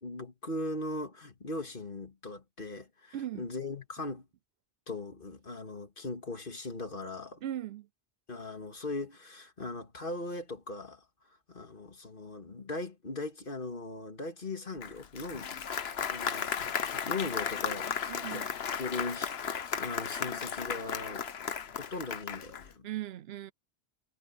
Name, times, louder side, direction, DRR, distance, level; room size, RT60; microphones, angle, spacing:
voice 1, 0.0-4.3 4.9-7.4 8.3-11.0 11.5-15.5 16.1-18.5 18.8-21.3 21.8-22.9, left 2 dB, 55° left, 2.3 m, -39 dB
voice 2, 3.1-3.5 7.4-7.9 18.1-18.5 22.8-23.5, right 12 dB, 75° right, 0.8 m, -38 dB
Applause, 14.8-22.7, left 7 dB, 70° left, 1.2 m, -35 dB
omnidirectional pair, 1.1 m